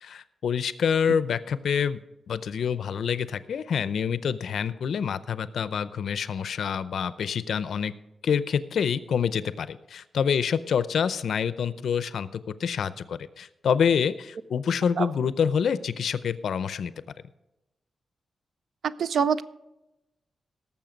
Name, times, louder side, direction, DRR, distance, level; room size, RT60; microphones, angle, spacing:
voice 1, 0.0-2.0 2.3-7.9 8.2-16.9, left 7 dB, 75° left, 15 dB, 0.5 m, -27 dB
voice 2, 18.8-19.4, right 6 dB, 65° right, 15 dB, 0.5 m, -24 dB
18.0 x 7.2 x 5.1 m, 0.96 s
wide cardioid pair, 155°, 0 cm